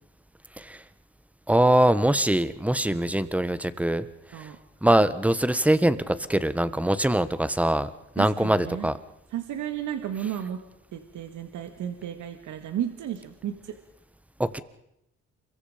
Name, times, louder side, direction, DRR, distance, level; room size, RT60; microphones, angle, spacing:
voice 1, 1.5-4.0 4.8-7.9 8.2-9.0 14.4-14.6, right 1 dB, 5° right, 14 dB, 1.4 m, -23 dB
voice 2, 8.2-8.9 9.3-10.6 10.9-13.6, right 10 dB, 80° right, 7 dB, 2.1 m, -33 dB
28.0 x 23.5 x 5.2 m, 0.82 s
cardioid pair, 90°, 30 cm